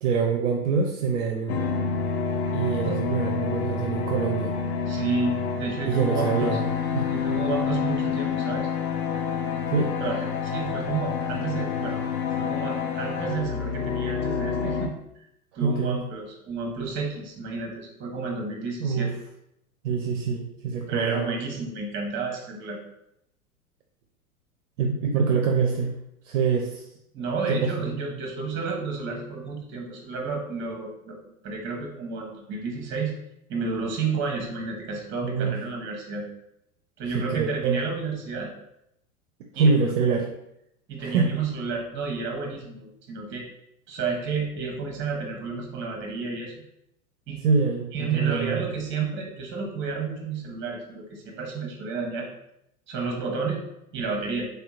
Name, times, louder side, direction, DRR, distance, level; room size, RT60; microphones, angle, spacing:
voice 1, 0.0-1.6 2.5-4.5 5.8-6.6 6.9-7.1 9.7-9.9 15.6-16.1 18.8-19.2 19.8-21.3 24.8-26.9 27.5-27.7 35.2-35.6 37.1-37.8 39.5-40.3 41.0-41.3 47.4-48.6, right 5 dB, 60° right, 2 dB, 0.5 m, -25 dB
sound 1, 1.5-14.9, left 6 dB, 50° left, 0.4 m, -28 dB
voice 2, 4.9-6.6 7.1-8.7 10.0-12.0 12.4-14.9 15.6-19.1 20.9-22.8 27.1-31.2 31.4-33.1 33.5-36.3 37.0-38.5 39.5-39.7 40.9-43.5 43.9-46.6 47.3-47.4 47.9-52.3 52.9-53.6 53.9-54.5, right 4 dB, 25° right, 1 dB, 0.8 m, -31 dB
3.3 x 2.8 x 2.3 m, 0.80 s
figure-of-eight pair, 95°, 43 cm